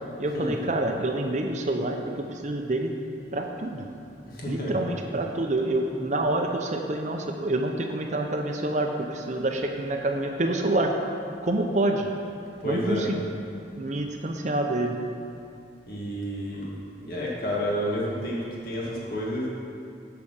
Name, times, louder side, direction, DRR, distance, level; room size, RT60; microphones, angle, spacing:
voice 1, 0.2-2.9 3.3-3.9 4.4-10.9 11.4-12.1 12.6-13.2 13.8-15.0, right 2 dB, 40° right, 3 dB, 0.7 m, -27 dB
voice 2, 4.3-4.8 12.6-13.1 15.9-19.5, equal, 55° left, -5 dB, 2.0 m, -30 dB
8.7 x 5.9 x 6.5 m, 2.5 s
head